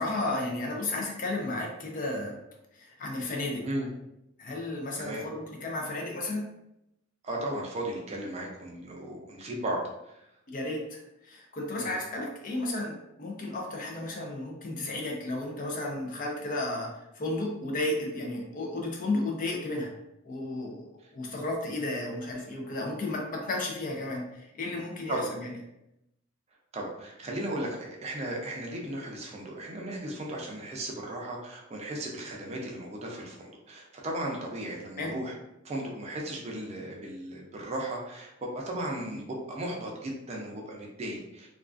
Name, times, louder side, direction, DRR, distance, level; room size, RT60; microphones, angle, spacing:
voice 1, 0.0-2.4 2.7-3.7 4.4-6.5 10.5-19.9 20.2-25.5 35.0-35.1, left 2 dB, 40° left, 0 dB, 0.5 m, -33 dB
voice 2, 7.2-9.8 10.1-10.2 11.8-11.9 25.1-25.3 26.7-35.3 35.6-41.5, right 1 dB, 30° right, -1 dB, 0.4 m, -36 dB
2.3 x 2.3 x 2.4 m, 0.85 s
head